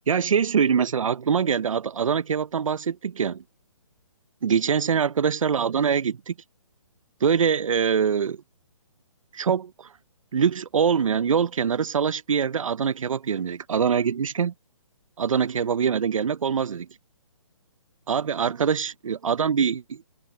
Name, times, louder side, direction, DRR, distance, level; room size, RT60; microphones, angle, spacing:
voice 1, 0.1-3.4 4.4-6.3 7.2-8.4 9.3-9.9 10.3-14.5 15.2-16.9 18.1-20.0, right 7 dB, 90° right, 0.6 m, -24 dB
hypercardioid pair, 170°, 17 cm